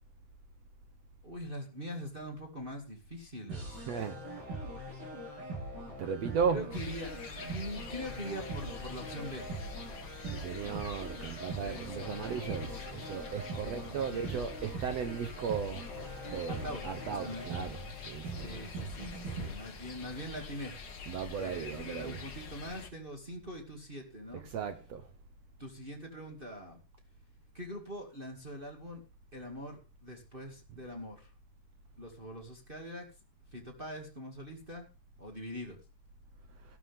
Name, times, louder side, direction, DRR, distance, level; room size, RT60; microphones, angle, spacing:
voice 1, 1.2-3.8 6.5-9.5 11.6-12.5 13.6-14.3 16.5-16.8 17.2-17.7 18.4-20.8 21.4-24.5 25.6-26.8 27.5-29.0 29.3-31.3 32.0-33.1 33.5-34.9 35.2-35.8, equal, 20° right, 1.9 m, -43 dB
sound 1, 3.5-19.5, right 1 dB, 90° right, 9.7 m, -42 dB
voice 2, 3.9-4.2 6.0-6.8 10.3-18.4 18.7-18.9 21.1-22.2 24.3-25.0, right 7 dB, 70° right, 1.6 m, -36 dB
sound 2, 6.7-22.9, left 4 dB, 50° left, 1.2 m, -46 dB
14.5 x 12.5 x 3.6 m
omnidirectional pair, 4.1 m